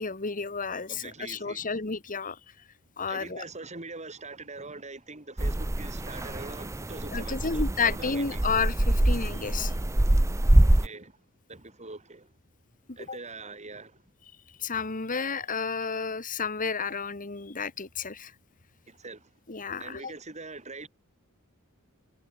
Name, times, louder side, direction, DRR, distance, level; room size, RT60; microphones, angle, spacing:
voice 1, 0.0-2.4 3.0-3.5 7.1-9.7 13.1-13.2 14.6-18.3 19.5-20.1, left 5 dB, 40° left, 1.6 m, -31 dB
voice 2, 0.9-1.7 3.1-8.4 10.8-11.1 11.5-12.3 13.0-14.0 18.9-19.2 19.8-20.9, right 3 dB, 30° right, 3.7 m, -43 dB
sound 1, 5.4-10.9, right 1 dB, 15° right, 0.6 m, -24 dB
head